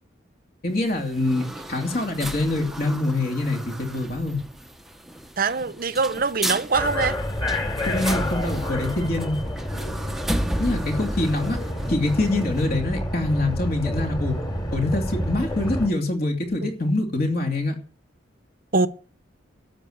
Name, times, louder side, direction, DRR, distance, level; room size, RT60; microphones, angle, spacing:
voice 1, 0.6-4.4 7.8-9.4 10.6-11.6 11.9-14.4 14.7-17.7, left 2 dB, 50° left, 2.7 m, -25 dB
sound 1, 0.7-12.7, right 1 dB, ahead, 0.8 m, -34 dB
voice 2, 5.4-7.2 16.6-16.7 18.7-18.9, right 4 dB, 45° right, 0.8 m, -23 dB
sound 2, 6.7-15.9, left 1 dB, 20° left, 2.7 m, -28 dB
12.5 x 7.6 x 8.0 m
head